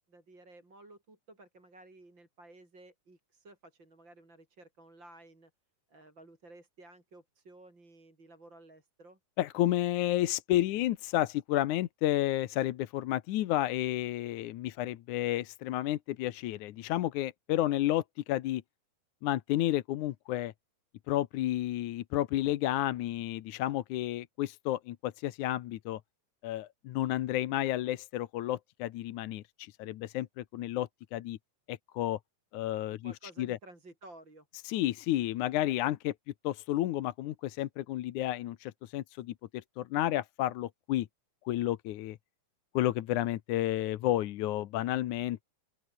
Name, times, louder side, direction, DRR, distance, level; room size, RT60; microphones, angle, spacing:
voice 1, 0.1-5.5 5.9-9.2 32.9-34.5, right 2 dB, 30° right, 6.5 m, -54 dB
voice 2, 9.4-18.6 19.2-20.5 21.1-26.0 26.4-31.4 31.7-32.2 32.5-33.1 33.4-33.6 34.7-36.1 36.4-41.1 41.5-42.2 42.7-45.4, left 14 dB, 70° left, 2.2 m, -31 dB
open air
omnidirectional pair, 3.9 m